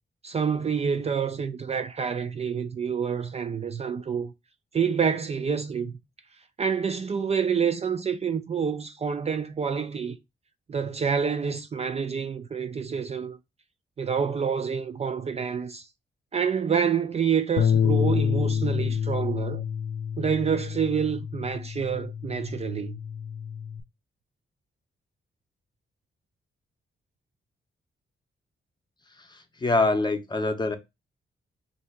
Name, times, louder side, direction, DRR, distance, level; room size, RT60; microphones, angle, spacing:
voice 1, 0.2-4.3 4.7-5.9 6.6-10.2 10.7-13.4 14.0-15.9 16.3-19.7 20.2-23.0, right 6 dB, 35° right, 0.3 m, -27 dB
Bass guitar, 17.6-23.8, left 8 dB, 85° left, 0.5 m, -28 dB
voice 2, 29.3-30.8, left 2 dB, 20° left, 0.6 m, -25 dB
3.3 x 2.7 x 4.4 m
wide cardioid pair, 135°, 20 cm